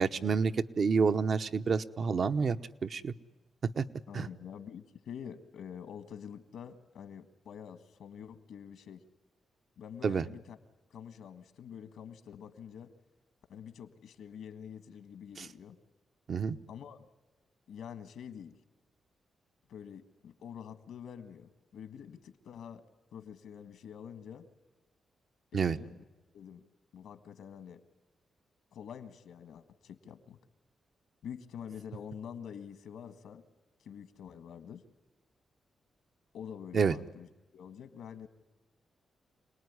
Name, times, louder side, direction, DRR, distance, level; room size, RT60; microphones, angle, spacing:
voice 1, 0.0-2.6 2.8-3.1 3.8-3.9 4.1-4.3 10.0-10.2 15.4-15.5 16.3-16.6 25.5-25.8 36.7-36.9, right 5 dB, 55° right, 10 dB, 0.9 m, -28 dB
voice 2, 4.1-9.0 9.8-10.6 10.9-12.9 13.5-15.8 16.7-17.1 17.7-18.6 19.7-22.9 23.1-24.5 25.5-26.1 26.3-26.7 26.9-27.8 28.7-30.4 31.2-33.4 33.8-34.8 36.3-37.3 37.5-38.3, left 8 dB, 90° left, 10 dB, 1.7 m, -47 dB
27.0 x 19.5 x 9.7 m, 1.1 s
cardioid pair, 80°, 0 cm